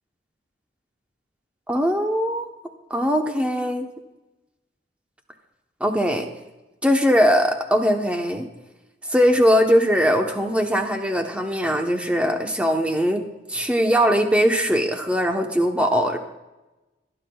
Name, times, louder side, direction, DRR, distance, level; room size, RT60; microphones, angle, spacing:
voice 1, 1.7-2.5 2.9-3.9 5.8-6.3 6.8-8.5 9.1-13.2 13.5-16.2, equal, 5° right, 3 dB, 0.9 m, -20 dB
26.0 x 9.8 x 2.3 m, 1.1 s
head